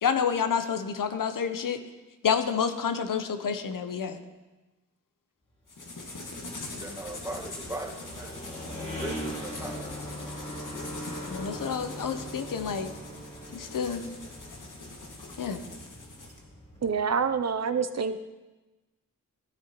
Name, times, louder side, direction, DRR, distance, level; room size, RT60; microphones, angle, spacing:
voice 1, 0.0-1.8 2.2-4.2 11.3-12.9 13.5-14.0 15.4-15.6, left 6 dB, 85° left, 9 dB, 0.8 m, -29 dB
sound 1, 5.7-16.4, left 2 dB, 70° left, 1.9 m, -43 dB
sound 2, 5.7-17.3, equal, 20° left, 3.0 m, -41 dB
voice 2, 6.8-8.6 9.0-9.7, right 2 dB, 10° right, -2 dB, 1.5 m, -39 dB
voice 3, 16.8-18.2, right 6 dB, 55° right, 10 dB, 0.5 m, -27 dB
15.5 x 10.0 x 3.0 m, 1.2 s
wide cardioid pair, 90°, 32 cm